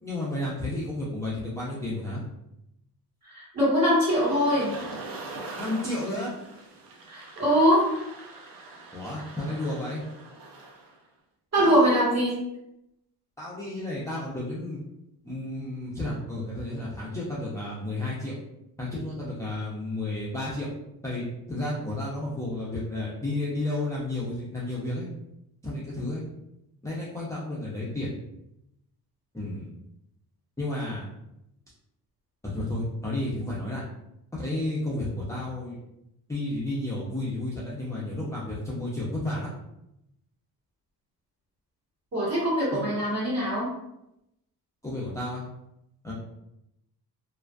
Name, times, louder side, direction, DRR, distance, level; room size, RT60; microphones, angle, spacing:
voice 1, 0.0-2.2 5.6-6.3 8.9-10.0 11.6-12.0 13.4-14.8 15.2-18.3 18.8-20.7 21.0-25.1 25.6-26.2 26.8-28.2 29.3-29.7 30.6-31.1 32.4-33.8 34.3-35.8 36.3-39.5 42.7-42.9 44.8-45.4 46.0-46.1, left 1 dB, 10° left, -7 dB, 0.4 m, -32 dB
voice 2, 3.2-4.7 7.1-7.9 11.5-12.4 42.1-43.7, equal, 40° right, -7 dB, 1.4 m, -22 dB
sound 1, 3.9-11.0, right 3 dB, 60° right, 0.5 m, -42 dB
2.5 x 2.2 x 2.2 m, 0.84 s
cardioid pair, 120°, 39 cm